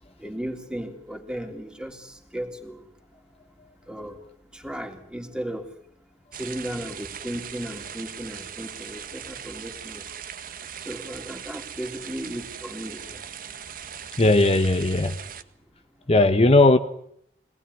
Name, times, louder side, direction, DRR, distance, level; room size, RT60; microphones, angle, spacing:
voice 1, 0.2-2.8 3.9-4.2 4.5-5.7 6.4-10.0 10.9-13.2, right 1 dB, 5° right, 3.5 m, -35 dB
sound 1, 6.3-15.4, right 8 dB, 55° right, 1.6 m, -39 dB
voice 2, 14.2-15.2 16.1-16.8, left 2 dB, 35° left, 1.2 m, -17 dB
24.5 x 19.0 x 9.9 m
head